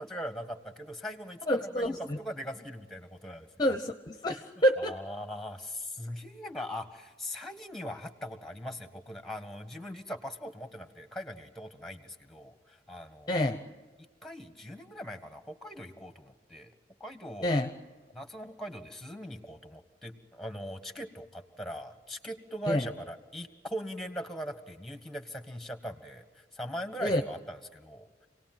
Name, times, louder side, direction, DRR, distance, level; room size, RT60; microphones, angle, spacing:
voice 1, 0.0-3.5 4.8-13.5 14.2-16.7 17.0-17.6 18.1-28.1, equal, ahead, 8 dB, 1.6 m, -40 dB
voice 2, 1.5-2.2 3.6-4.9 13.3-13.6 17.4-17.7 22.7-22.9 27.0-27.2, equal, 25° left, 7 dB, 0.9 m, -28 dB
28.0 x 18.5 x 7.7 m, 1.4 s
head